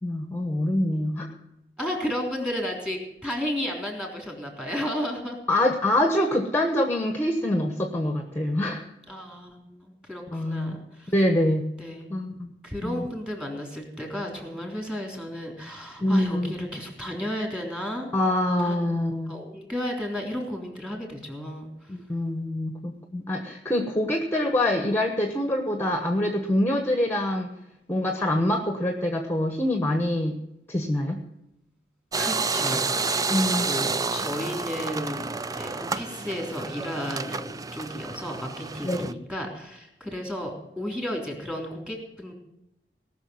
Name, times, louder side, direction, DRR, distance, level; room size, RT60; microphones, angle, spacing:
voice 1, 0.0-1.3 5.5-8.8 10.3-10.8 11.1-11.7 12.1-12.5 12.8-13.1 16.0-16.5 18.1-19.4 21.9-27.5 27.9-30.4 30.7-31.2 33.3-33.7 38.8-39.0, left 1 dB, 15° left, 4 dB, 1.2 m, -25 dB
voice 2, 1.8-5.4 9.1-11.1 11.8-12.2 12.6-18.1 18.6-18.8 19.3-21.9 32.2-33.3 33.6-42.3, equal, 5° right, 1 dB, 3.4 m, -33 dB
sound 1, 32.1-39.1, right 4 dB, 20° right, 0.4 m, -30 dB
18.5 x 6.4 x 7.8 m, 0.85 s
head